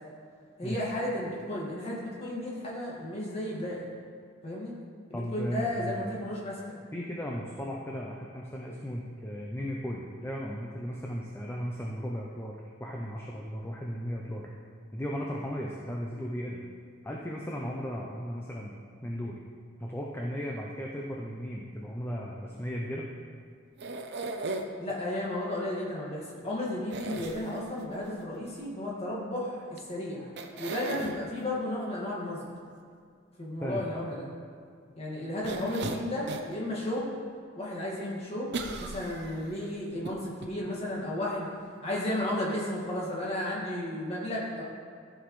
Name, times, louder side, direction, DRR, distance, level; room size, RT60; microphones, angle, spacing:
voice 1, 0.6-3.9 4.4-4.7 5.1-6.8 24.8-30.3 30.6-32.4 33.4-34.3 35.0-37.1 37.6-38.5 38.8-41.5 41.8-44.6, left 1 dB, 30° left, -5 dB, 1.9 m, -33 dB
voice 2, 5.1-6.1 6.9-14.5 14.9-16.6 17.0-19.4 19.8-23.1 33.6-34.0, equal, 10° left, -3 dB, 0.5 m, -36 dB
sound 1, 23.8-24.9 26.9-27.8 29.8-29.9 30.4-31.1 35.4-36.6 37.0-37.1 38.5-39.5 40.1-40.2 40.4-40.5, right 3 dB, 55° right, 0.6 m, -36 dB
13.5 x 6.0 x 3.2 m, 2.2 s
head